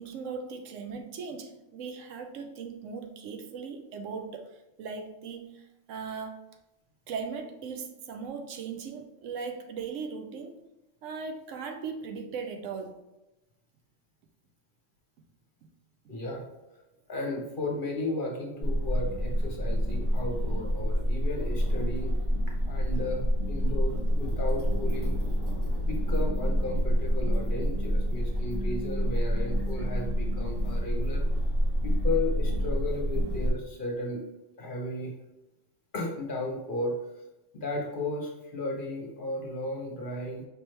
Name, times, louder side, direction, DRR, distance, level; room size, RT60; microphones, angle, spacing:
voice 1, 0.0-6.4 7.1-10.6 11.0-13.0, right 5 dB, 90° right, 5 dB, 1.0 m, -38 dB
voice 2, 16.1-16.4 17.1-22.2 22.7-25.1 25.7-31.2 31.8-34.2 34.6-35.1 35.9-37.0 37.5-40.4, left 2 dB, 50° left, 0 dB, 0.9 m, -34 dB
sound 1, 18.6-33.5, equal, 50° right, 1.6 m, -28 dB
5.2 x 3.0 x 3.1 m, 0.96 s
omnidirectional pair, 1.3 m